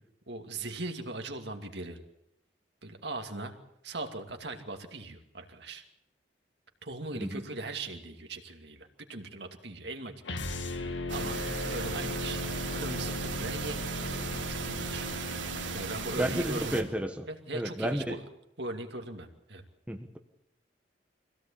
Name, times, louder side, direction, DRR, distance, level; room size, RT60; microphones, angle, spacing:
voice 1, 0.3-2.0 2.8-3.5 3.8-5.8 6.8-10.1 11.1-11.4 11.7-12.5 12.7-14.0 14.5-15.1 15.7-16.9 17.3-18.2 18.6-19.6, right 2 dB, 65° right, 4 dB, 2.5 m, -39 dB
sound 1, 10.2-16.4, left 1 dB, 85° left, 1.9 m, -37 dB
sound 2, 11.1-16.8, right 5 dB, 90° right, 2.9 m, -37 dB
voice 2, 16.1-17.3 17.5-18.2 19.9-20.2, equal, 5° right, 4 dB, 1.2 m, -31 dB
25.0 x 17.0 x 8.7 m, 0.81 s
head